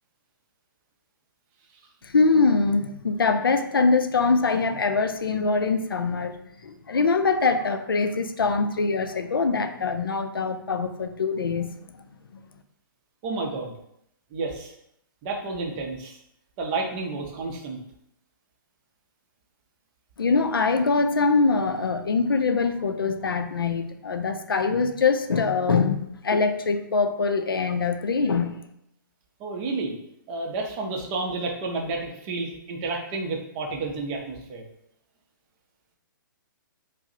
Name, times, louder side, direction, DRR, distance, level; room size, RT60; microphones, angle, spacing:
voice 1, 2.0-11.8 20.2-28.6, left 4 dB, 85° left, 8 dB, 0.4 m, -23 dB
voice 2, 13.2-13.7 14.3-14.7 15.2-16.2 16.6-17.8 29.4-30.0 30.3-34.6, right 3 dB, 30° right, 1 dB, 0.6 m, -30 dB
4.6 x 2.0 x 2.7 m, 0.77 s
figure-of-eight pair, 130°, 12 cm